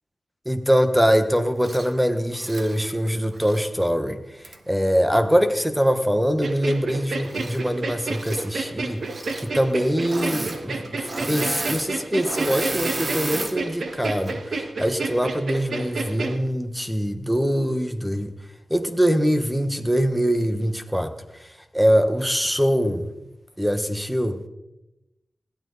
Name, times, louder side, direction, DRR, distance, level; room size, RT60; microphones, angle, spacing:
voice 1, 0.4-4.2 4.7-9.0 9.4-18.3 18.7-21.1 21.7-23.1 23.6-24.4, equal, 5° right, 8 dB, 1.4 m, -23 dB
Engine / Mechanisms, 1.6-1.9 2.3-3.7 4.4-4.6 7.2-7.8 8.1-8.5 9.0-9.5 10.0-10.6 10.8-13.6 14.0-14.3, right 2 dB, 35° right, 1.6 m, -32 dB
sound 1, 6.4-16.4, right 3 dB, 70° right, 1.6 m, -30 dB
21.0 x 15.5 x 4.1 m, 0.93 s
wide cardioid pair, 120°, 0 cm